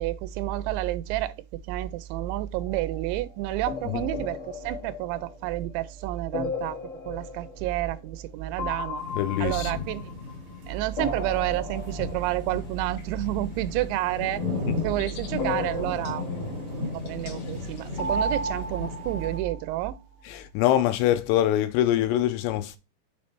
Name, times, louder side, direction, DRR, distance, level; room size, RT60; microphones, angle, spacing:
voice 1, 0.0-6.8 7.1-9.0 9.4-10.1 10.7-14.4 14.8-20.0, right 14 dB, 85° right, 2.8 m, -30 dB
sound 1, 2.6-3.1 3.7-5.7 6.3-8.3 8.6-10.6 10.9-12.7 15.4-17.2 18.0-20.0, left 2 dB, 45° left, 1.8 m, -35 dB
sound 2, 9.0-19.4, left 3 dB, 50° right, 2.8 m, -36 dB
voice 2, 9.2-9.7 14.7-14.8 20.3-22.8, left 12 dB, 85° left, 2.6 m, -24 dB
sound 3, 11.7-18.7, left 4 dB, 65° left, 2.5 m, -47 dB
7.1 x 3.2 x 4.4 m
omnidirectional pair, 5.2 m